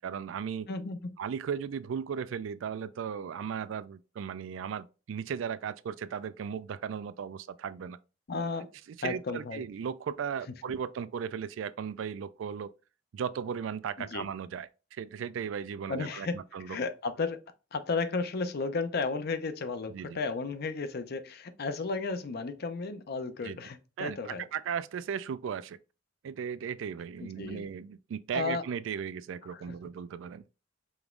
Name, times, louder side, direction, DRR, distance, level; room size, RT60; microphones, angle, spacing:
voice 1, 0.0-0.7 1.2-8.0 9.0-12.7 13.1-16.8 19.9-20.2 23.4-23.6 24.0-25.8 26.2-30.5, right 7 dB, 70° right, 0.3 m, -36 dB
voice 2, 0.7-1.2 8.3-8.7 9.0-9.6 14.0-14.3 15.9-17.4 17.7-24.5 27.2-27.7 28.3-28.6 29.5-29.8, left 4 dB, 55° left, 0.5 m, -34 dB
5.1 x 3.0 x 2.5 m
head